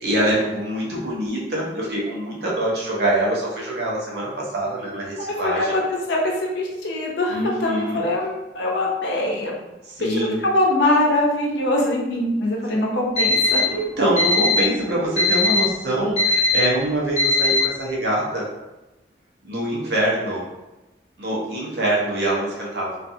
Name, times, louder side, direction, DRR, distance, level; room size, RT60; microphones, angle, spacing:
voice 1, 0.0-5.7 7.3-8.0 10.0-10.4 12.7-12.8 13.6-18.5 19.4-20.5 21.2-23.0, right 1 dB, 65° right, -4 dB, 0.7 m, -24 dB
voice 2, 5.3-9.5 10.0-13.7, left 1 dB, 80° left, -2 dB, 0.7 m, -23 dB
Alarm, 13.2-13.6 14.2-14.6 15.2-15.6 16.2-16.6 17.2-17.6, equal, 40° left, 0.8 m, -19 dB
2.5 x 2.4 x 2.6 m, 1.0 s
head